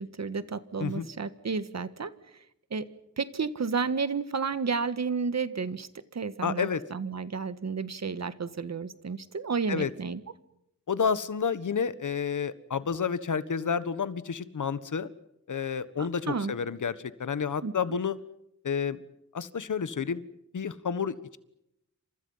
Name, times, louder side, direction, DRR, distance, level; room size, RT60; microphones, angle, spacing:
voice 1, 0.0-2.1 2.7-2.9 3.2-10.2 16.2-16.5 17.6-17.7, right 5 dB, 55° right, 13 dB, 1.6 m, -31 dB
voice 2, 6.4-6.8 9.7-9.9 10.9-15.1 15.5-18.2 18.6-19.0 19.3-20.2 20.5-21.4, left 6 dB, 70° left, 15 dB, 1.5 m, -30 dB
29.0 x 26.5 x 5.7 m, 0.80 s
wide cardioid pair, 100°, 31 cm